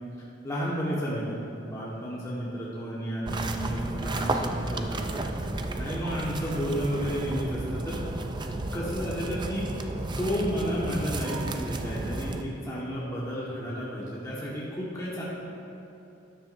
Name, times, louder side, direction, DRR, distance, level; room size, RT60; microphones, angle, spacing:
voice 1, 0.4-5.2 5.8-8.0 8.7-9.9 10.2-15.2, equal, 15° left, -7 dB, 1.4 m, -32 dB
sound 1, 3.3-12.4, right 2 dB, 25° right, 0.4 m, -32 dB
13.0 x 9.7 x 2.6 m, 2.8 s
head